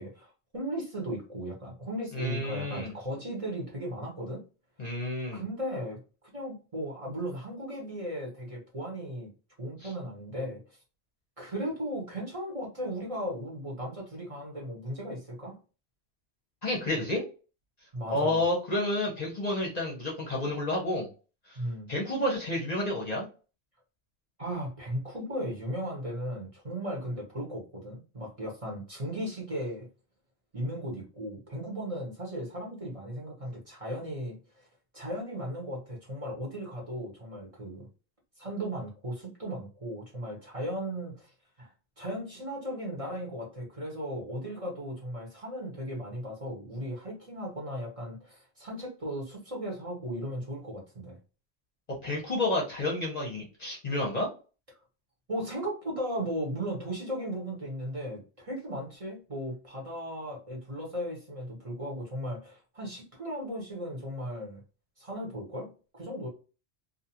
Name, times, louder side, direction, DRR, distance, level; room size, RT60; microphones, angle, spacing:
voice 1, 0.0-4.4 5.3-6.0 6.3-9.3 9.6-10.6 11.4-15.6 17.9-18.4 21.6-21.9 24.4-29.9 30.5-34.7 34.9-37.9 38.4-41.3 41.6-51.2 55.3-64.6 65.0-66.3, equal, 35° right, -2 dB, 0.9 m, -36 dB
voice 2, 2.1-2.9 4.8-5.4 9.8-9.9 16.6-17.2 18.1-21.1 21.5-21.6 21.9-23.3 52.0-54.3, left 1 dB, 45° left, -2 dB, 0.7 m, -30 dB
2.5 x 2.3 x 2.8 m, 0.34 s
omnidirectional pair, 1.1 m